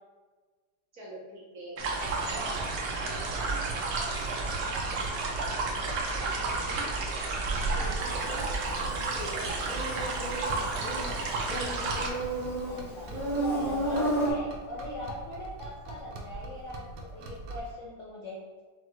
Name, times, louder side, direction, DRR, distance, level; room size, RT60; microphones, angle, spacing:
voice 1, 0.9-2.6 2.9-3.8 6.1-6.9 7.7-8.6 9.1-9.7, equal, 45° right, -7 dB, 1.6 m, -44 dB
sound 1, 1.8-12.1, right 3 dB, 70° right, 1.2 m, -32 dB
sound 2, 2.0-17.7, right 2 dB, 85° right, 1.4 m, -41 dB
Insect, 8.0-14.3, right 1 dB, ahead, 0.6 m, -33 dB
voice 2, 12.7-18.4, left 1 dB, 70° left, -5 dB, 0.7 m, -40 dB
6.1 x 2.0 x 2.9 m, 1.4 s
omnidirectional pair, 2.0 m